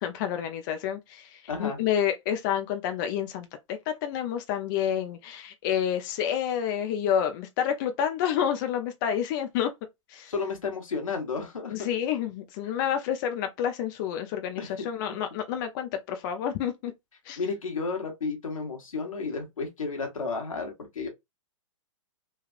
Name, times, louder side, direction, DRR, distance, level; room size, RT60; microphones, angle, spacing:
voice 1, 0.0-9.7 10.1-10.3 11.7-16.9 17.3-17.4, left 9 dB, 40° left, 0.5 m, -29 dB
voice 2, 1.5-1.8 10.3-11.9 14.6-15.2 17.4-21.1, left 4 dB, 90° left, 1.2 m, -32 dB
3.2 x 2.3 x 2.4 m
hypercardioid pair, 130°, 17 cm